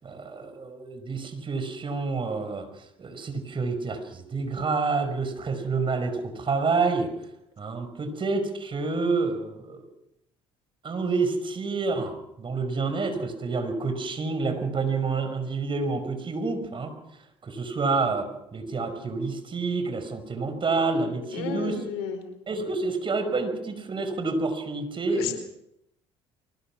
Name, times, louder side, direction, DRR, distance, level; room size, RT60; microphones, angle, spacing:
voice 1, 0.0-2.7 3.0-7.1 7.6-9.9 10.8-16.9 17.4-21.8 22.5-25.3, right 4 dB, 40° right, 8 dB, 5.5 m, -28 dB
voice 2, 21.2-22.3 25.1-25.3, left 8 dB, 80° left, 6 dB, 4.6 m, -33 dB
24.0 x 19.5 x 6.1 m, 0.80 s
hypercardioid pair, 65°, 13 cm